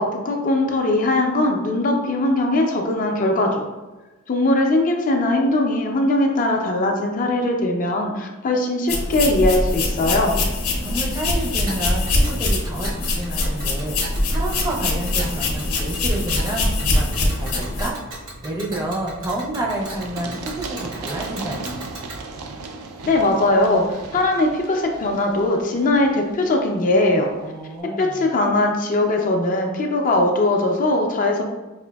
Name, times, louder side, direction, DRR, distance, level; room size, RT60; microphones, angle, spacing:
voice 1, 0.0-3.7 4.3-10.3 23.1-27.3 28.0-31.4, left 2 dB, 40° left, 2 dB, 0.4 m, -20 dB
sound 1, 8.9-17.9, left 2 dB, 75° left, 0.7 m, -23 dB
voice 2, 10.8-18.1 18.4-22.0 27.4-28.3, right 1 dB, 15° right, -2 dB, 0.5 m, -29 dB
Tick, 11.7-22.2, right 1 dB, 65° right, 1.0 m, -37 dB
Run, 19.8-27.5, right 3 dB, 85° right, 0.4 m, -37 dB
4.9 x 2.5 x 2.2 m, 1.1 s
head